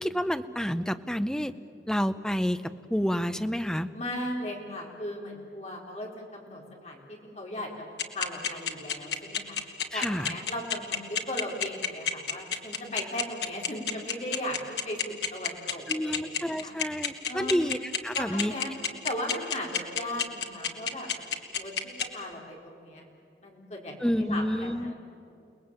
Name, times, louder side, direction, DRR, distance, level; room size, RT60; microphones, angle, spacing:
voice 1, 0.0-1.5 1.9-2.6 2.9-3.9 9.9-10.3 15.9-17.8 18.0-18.5 24.0-24.9, equal, 5° left, 10 dB, 0.7 m, -29 dB
voice 2, 3.9-7.8 8.1-9.6 9.9-15.0 15.3-16.7 17.3-17.7 18.1-18.7 19.0-21.1 21.5-23.1 23.4-24.9, left 1 dB, 35° left, -1 dB, 4.3 m, -37 dB
sound 1, 8.0-22.0, left 8 dB, 70° left, 1.9 m, -28 dB
29.5 x 19.5 x 8.9 m, 2.6 s
head